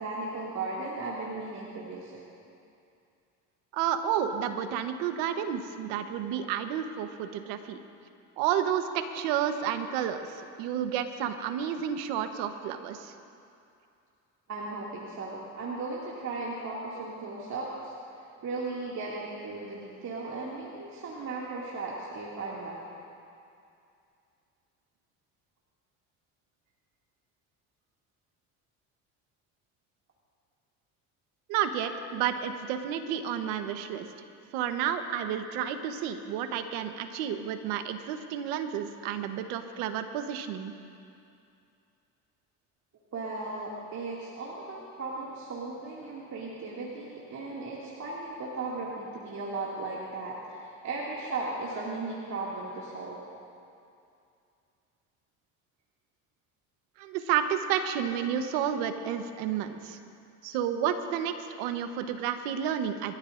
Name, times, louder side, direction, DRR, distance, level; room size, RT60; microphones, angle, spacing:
voice 1, 0.0-2.2 14.5-22.8 43.1-53.2, right 3 dB, 50° right, -6 dB, 2.5 m, -36 dB
voice 2, 3.7-7.8 8.4-13.1 31.5-34.1 34.5-40.7 57.0-60.0 60.4-63.1, right 9 dB, 85° right, 8 dB, 1.2 m, -31 dB
26.5 x 13.5 x 2.6 m, 2.5 s
supercardioid pair, 75°, 37 cm